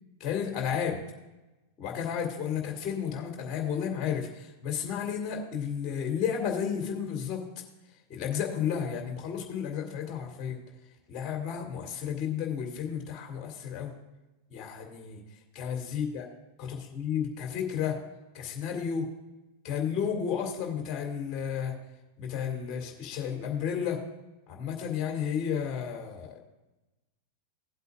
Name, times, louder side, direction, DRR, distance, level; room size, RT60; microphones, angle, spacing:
voice 1, 0.2-1.0 1.8-7.4 8.1-10.6 11.1-13.9 14.5-15.2 15.5-16.3 16.6-18.0 18.3-19.1 19.6-21.7 22.2-24.0 24.5-26.4, left 8 dB, 35° left, 1 dB, 2.5 m, -32 dB
17.5 x 8.1 x 2.5 m, 1.0 s
figure-of-eight pair, 90°, 0 cm